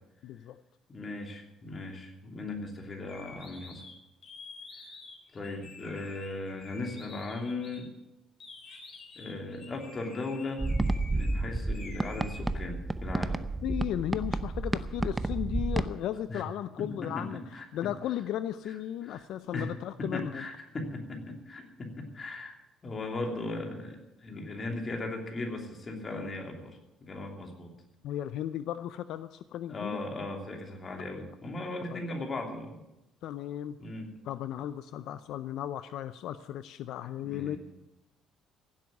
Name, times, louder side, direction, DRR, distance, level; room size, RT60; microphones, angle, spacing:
voice 1, 0.2-0.6 13.6-20.5 28.0-30.0 31.9-32.0 33.2-33.8 34.2-37.6, left 11 dB, 75° left, 13 dB, 0.5 m, -35 dB
voice 2, 0.9-3.8 5.3-7.9 9.2-10.6 11.0-13.4 16.3-16.4 16.8-17.6 19.0-19.2 19.5-19.7 20.0-22.5 22.8-27.7 29.7-32.8 33.8-34.1 37.2-37.6, left 2 dB, 30° left, 2 dB, 2.9 m, -38 dB
sound 1, 2.9-7.8 8.4-11.4 11.7-12.4, left 3 dB, 45° left, 4.1 m, -49 dB
sound 2, 10.6-15.9, right 2 dB, 15° right, 0.7 m, -31 dB
16.0 x 7.8 x 9.4 m, 0.96 s
cardioid pair, 120°, 0 cm